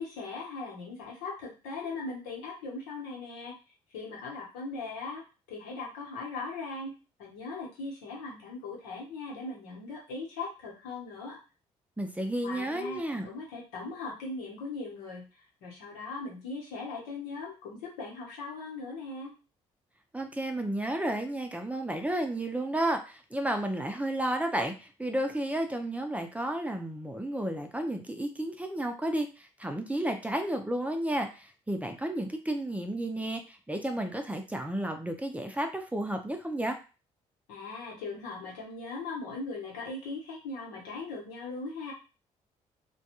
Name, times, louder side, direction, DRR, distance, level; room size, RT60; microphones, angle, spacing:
voice 1, 0.0-3.5 3.9-5.2 5.5-6.9 7.2-11.4 12.4-15.3 15.6-19.3 37.5-41.9, left 3 dB, 85° left, -3 dB, 1.0 m, -39 dB
voice 2, 12.0-13.3 20.1-36.8, right 1 dB, 10° right, 4 dB, 0.5 m, -32 dB
2.3 x 2.2 x 2.9 m, 0.32 s
hypercardioid pair, 55°, 15 cm